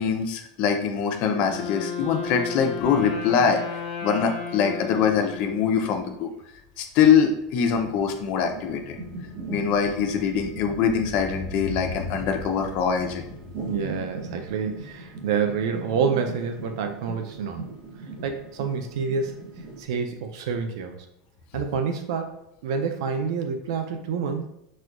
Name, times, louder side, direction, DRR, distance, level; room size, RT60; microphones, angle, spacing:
voice 1, 0.0-3.6 4.0-6.3 6.8-9.0 9.5-13.3, left 7 dB, 55° left, 5 dB, 0.5 m, -23 dB
Wind instrument woodwind instrument, 1.2-6.1, left 6 dB, 80° left, 0.8 m, -34 dB
sound 1, 6.2-15.9 16.2-16.3, left 3 dB, 20° right, 0.6 m, -41 dB
sound 2, 7.7-19.8, right 3 dB, 50° right, 0.9 m, -40 dB
voice 2, 13.7-17.7 18.2-21.0 21.5-22.4 22.6-24.5, right 6 dB, 80° right, 6 dB, 0.3 m, -28 dB
4.2 x 2.2 x 2.4 m, 0.82 s
supercardioid pair, 125°, 3 cm